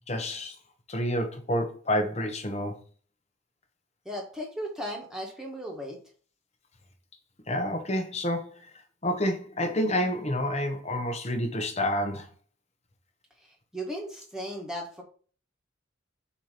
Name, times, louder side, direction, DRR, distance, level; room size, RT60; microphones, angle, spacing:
voice 1, 0.1-0.5 0.9-2.8 7.5-8.5 9.0-12.3, left 1 dB, 30° left, 1.0 m, -28 dB
voice 2, 4.0-6.0 13.4-15.0, equal, 5° right, 1.4 m, -36 dB
7.0 x 2.9 x 5.1 m
head